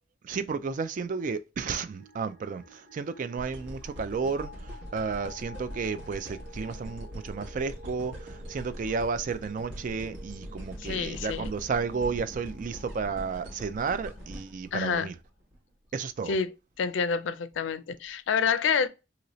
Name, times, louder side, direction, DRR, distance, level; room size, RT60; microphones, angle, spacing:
voice 1, 0.2-15.1 15.9-16.4, right 5 dB, 45° right, 0.3 m, -32 dB
sound 1, 1.9-15.0, left 1 dB, 30° right, 1.5 m, -51 dB
sound 2, 3.4-15.6 16.1-16.2, equal, 90° right, 1.2 m, -42 dB
voice 2, 10.8-11.5 14.7-15.1 16.3-18.9, left 6 dB, 90° left, 0.4 m, -28 dB
2.8 x 2.7 x 3.0 m
head